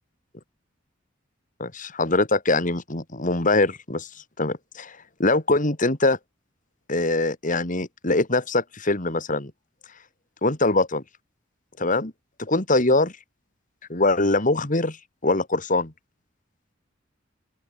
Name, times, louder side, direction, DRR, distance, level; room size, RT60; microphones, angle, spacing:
voice 1, 1.6-4.1 4.4-6.2 6.9-9.5 10.4-11.0 11.8-12.1 12.4-13.1 13.9-15.0 15.2-15.9, left 2 dB, 45° left, 2.7 m, -23 dB
open air
head